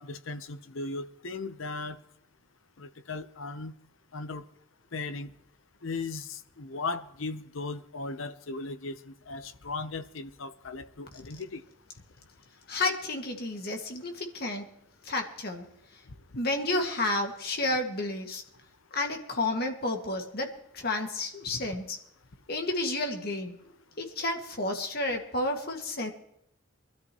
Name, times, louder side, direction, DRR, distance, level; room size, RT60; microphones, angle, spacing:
voice 1, 0.0-2.0 2.8-3.7 4.1-4.4 4.9-5.3 5.8-11.6 21.5-21.6, left 3 dB, 80° left, 11 dB, 0.9 m, -37 dB
voice 2, 12.7-14.7 15.0-15.7 16.4-18.4 18.9-22.0 22.5-23.7 24.0-26.1, left 2 dB, 50° left, 3 dB, 2.1 m, -31 dB
23.5 x 13.0 x 3.1 m, 0.77 s
head